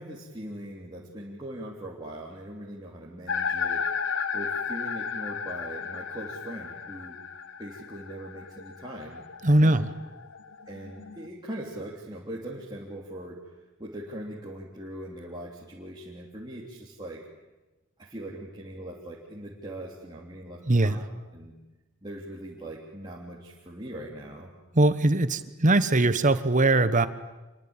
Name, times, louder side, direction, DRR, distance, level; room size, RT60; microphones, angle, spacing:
voice 1, 0.0-3.8 4.3-7.2 7.6-9.3 9.6-9.8 10.7-13.4 13.8-17.2 18.0-21.0 21.3-21.5 22.0-24.5, right 1 dB, 20° right, -4 dB, 3.3 m, -40 dB
sound 1, 3.3-11.3, left 6 dB, 60° left, 1.2 m, -34 dB
voice 2, 9.4-9.9 20.7-21.0 24.7-27.1, right 2 dB, 35° right, 12 dB, 1.2 m, -21 dB
27.5 x 23.5 x 9.0 m, 1.1 s
head